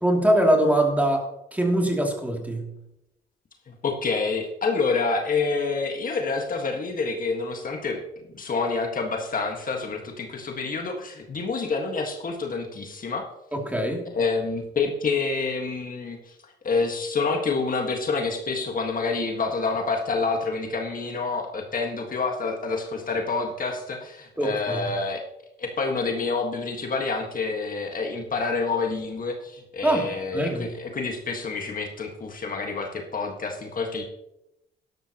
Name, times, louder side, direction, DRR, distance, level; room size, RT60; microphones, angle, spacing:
voice 1, 0.0-2.7 13.5-14.0 24.4-24.8 29.8-30.6, right 1 dB, 10° right, 1 dB, 2.8 m, -23 dB
voice 2, 3.7-8.0 8.3-13.2 14.1-25.2 25.6-34.0, left 4 dB, 45° left, 2 dB, 1.6 m, -28 dB
12.0 x 11.5 x 3.0 m, 0.85 s
cardioid pair, 90°, 20 cm